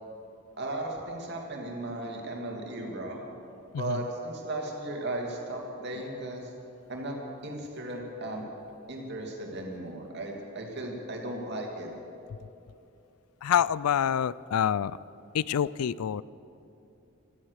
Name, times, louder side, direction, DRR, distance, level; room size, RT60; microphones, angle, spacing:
voice 1, 0.6-3.2 3.7-6.5 6.9-7.2 7.4-8.4 8.9-11.9, right 1 dB, 50° right, 1 dB, 2.5 m, -36 dB
voice 2, 13.4-15.0 15.3-16.2, left 8 dB, 85° left, 20 dB, 0.4 m, -26 dB
16.5 x 13.5 x 6.5 m, 2.8 s
head